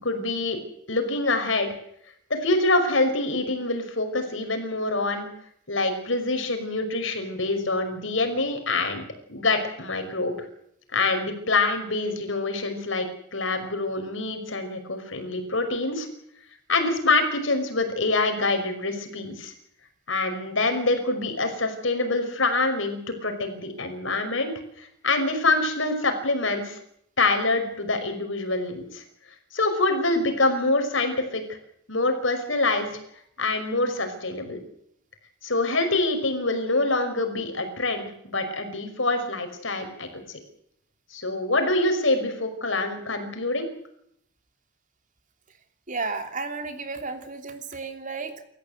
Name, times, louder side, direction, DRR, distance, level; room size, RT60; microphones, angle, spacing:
voice 1, 0.0-0.6 0.9-1.7 2.3-5.3 5.7-10.3 10.9-13.1 13.3-16.1 16.7-19.5 20.1-24.5 24.8-26.8 27.2-29.0 29.5-31.4 31.9-32.9 33.4-34.6 35.4-40.4 41.1-43.7, left 2 dB, 70° left, 7 dB, 5.6 m, -25 dB
voice 2, 45.9-48.4, right 4 dB, 40° right, 7 dB, 3.0 m, -33 dB
28.0 x 14.5 x 8.1 m, 0.71 s
head